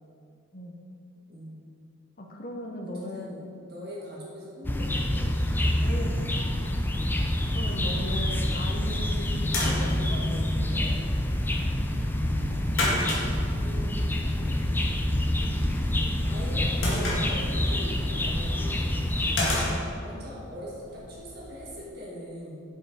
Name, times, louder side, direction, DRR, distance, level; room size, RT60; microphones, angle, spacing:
voice 1, 1.3-1.7 2.9-6.2 13.6-14.8 16.2-19.7 20.0-22.6, equal, 50° right, -5 dB, 1.8 m, -42 dB
voice 2, 2.2-3.3 5.8-6.8 7.5-11.0, left 1 dB, 40° left, 1 dB, 0.7 m, -38 dB
sound 1, 4.6-19.7, left 1 dB, 10° left, 0.4 m, -27 dB
sound 2, 9.0-21.8, left 1 dB, 65° left, 1.8 m, -35 dB
7.3 x 5.4 x 4.8 m, 2.5 s
head